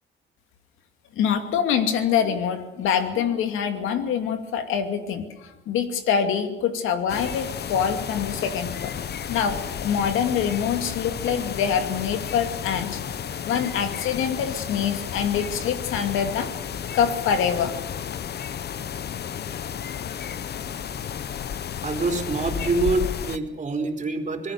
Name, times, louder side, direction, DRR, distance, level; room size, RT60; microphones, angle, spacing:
voice 1, 1.2-8.9 9.3-13.0 13.4-16.5 16.9-17.7, left 7 dB, 90° left, 7 dB, 2.5 m, -25 dB
sound 1, 7.1-23.4, left 8 dB, 55° left, 1.1 m, -32 dB
voice 2, 21.8-24.5, right 3 dB, 40° right, 3 dB, 4.0 m, -26 dB
26.0 x 19.5 x 7.0 m, 0.99 s
cardioid pair, 90°, 20 cm